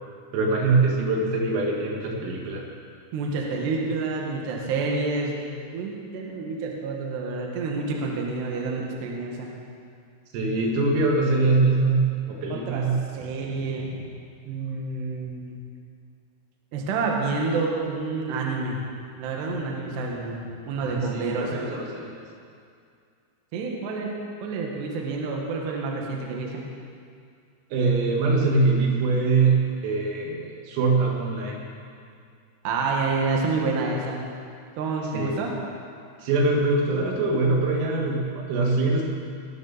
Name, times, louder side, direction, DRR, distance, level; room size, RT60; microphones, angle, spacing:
voice 1, 0.3-2.6 10.3-13.0 20.8-22.2 27.7-31.6 35.1-35.4 36.2-39.1, right 3 dB, 80° right, -1 dB, 4.5 m, -23 dB
voice 2, 3.1-5.5 5.7-9.5 12.5-12.9 13.1-14.1 14.5-15.6 16.7-18.8 19.2-21.5 23.5-24.2 24.4-26.6 32.6-34.2 34.7-35.5, right 3 dB, 65° right, -1 dB, 3.3 m, -28 dB
21.5 x 12.5 x 4.1 m, 2.3 s
omnidirectional pair, 6.0 m